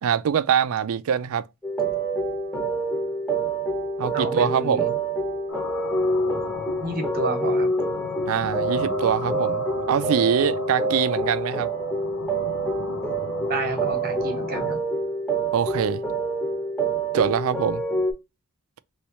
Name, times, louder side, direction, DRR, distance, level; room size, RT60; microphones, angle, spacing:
voice 1, 0.0-1.4 4.0-5.0 8.3-11.7 15.5-16.0 17.1-17.8, right 8 dB, 65° right, 0.3 m, -24 dB
sound 1, 1.6-18.1, right 2 dB, 5° left, 0.9 m, -27 dB
voice 2, 4.1-4.9 6.8-7.7 13.5-14.8, right 2 dB, 40° right, 1.0 m, -29 dB
sound 2, 5.5-14.7, left 3 dB, 90° left, 0.9 m, -37 dB
3.2 x 3.1 x 2.9 m
head